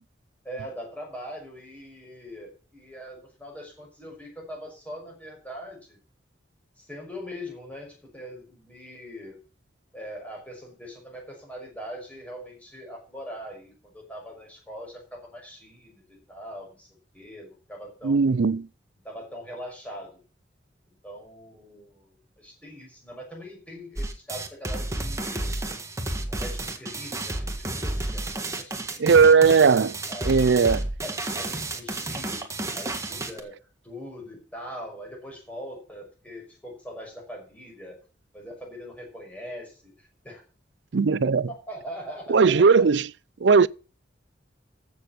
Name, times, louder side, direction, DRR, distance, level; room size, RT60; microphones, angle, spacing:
voice 1, 0.4-6.0 6.7-9.4 9.9-16.9 17.1-18.4 19.0-20.2 21.0-25.5 26.3-29.4 30.1-30.6 31.0-32.4 32.7-38.0 38.3-40.4 41.5-42.9, equal, 10° left, 5.8 m, -41 dB
voice 2, 18.0-18.6 29.0-29.9 30.3-30.8 40.9-41.5 42.3-43.0 43.4-43.7, right 5 dB, 70° right, 0.5 m, -17 dB
sound 1, 24.0-33.4, right 2 dB, 15° right, 1.7 m, -31 dB
14.5 x 7.1 x 5.9 m
head